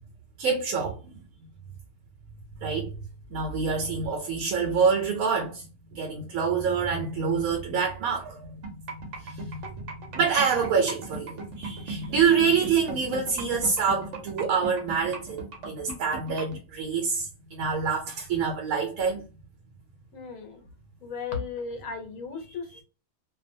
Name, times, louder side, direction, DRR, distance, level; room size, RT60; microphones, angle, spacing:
voice 1, 0.4-1.0 2.6-2.9 3.3-19.2, right 5 dB, 85° right, 1.1 m, -27 dB
sound 1, 8.6-16.6, right 3 dB, 60° right, 1.0 m, -37 dB
voice 2, 20.1-20.7 21.0-22.8, left 5 dB, 70° left, 1.2 m, -35 dB
2.6 x 2.1 x 2.5 m
omnidirectional pair, 1.5 m